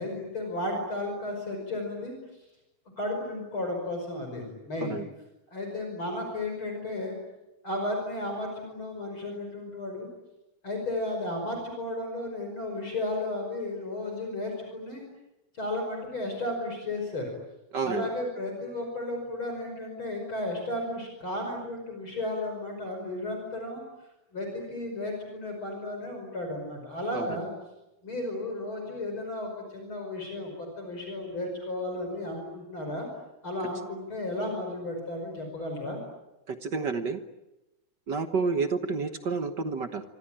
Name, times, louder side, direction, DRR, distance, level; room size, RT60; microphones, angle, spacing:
voice 1, 0.0-2.2 3.0-5.0 5.5-7.2 7.6-10.1 10.6-15.0 15.6-17.3 17.8-23.8 24.3-27.5 28.0-33.1 33.4-36.0, left 1 dB, 40° left, 2 dB, 6.1 m, -33 dB
voice 2, 17.7-18.0 27.1-27.3 36.5-37.2 38.1-40.0, right 4 dB, 50° right, 8 dB, 1.4 m, -29 dB
26.5 x 25.0 x 8.9 m, 0.96 s
omnidirectional pair, 3.4 m